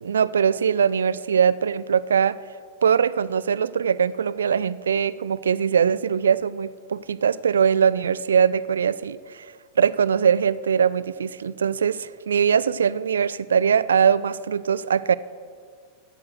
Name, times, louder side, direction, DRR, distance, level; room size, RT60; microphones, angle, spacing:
voice 1, 0.0-2.4 2.8-9.5 9.8-15.1, right 7 dB, 70° right, 19 dB, 0.3 m, -21 dB
15.5 x 8.5 x 6.5 m, 2.1 s
figure-of-eight pair, 90°, 0 cm